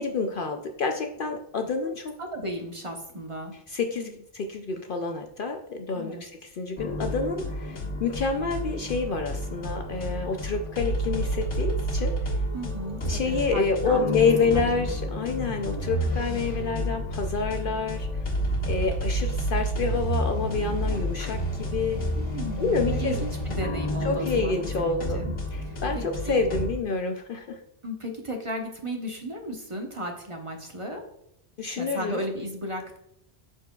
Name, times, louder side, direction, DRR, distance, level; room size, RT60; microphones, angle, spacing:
voice 1, 0.0-2.1 3.7-12.1 13.1-18.2 18.7-22.0 22.6-23.2 24.0-27.6 31.6-32.2, left 4 dB, 60° left, 5 dB, 0.7 m, -28 dB
voice 2, 1.8-3.5 5.9-6.2 12.5-14.3 14.5-14.7 22.1-25.3 25.6-26.4 27.8-31.0 31.7-33.0, equal, 30° right, 1 dB, 0.9 m, -35 dB
sound 1, 6.8-26.7, equal, 85° left, 1.9 m, -30 dB
12.0 x 4.5 x 2.3 m, 0.78 s
omnidirectional pair, 1.2 m